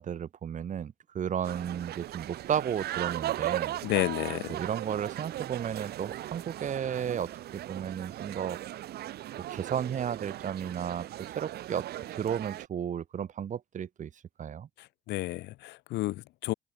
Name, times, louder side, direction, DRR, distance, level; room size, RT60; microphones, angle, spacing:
voice 1, 0.0-3.8 4.5-8.6 9.5-11.1 11.4-14.1 14.4-14.7, right 8 dB, 45° right, 6.2 m, -33 dB
sound 1, 1.4-12.7, right 13 dB, 70° right, 6.7 m, -38 dB
voice 2, 3.8-4.6 14.8-16.5, left 18 dB, 85° left, 2.5 m, -31 dB
open air
cardioid pair, 110°, 17 cm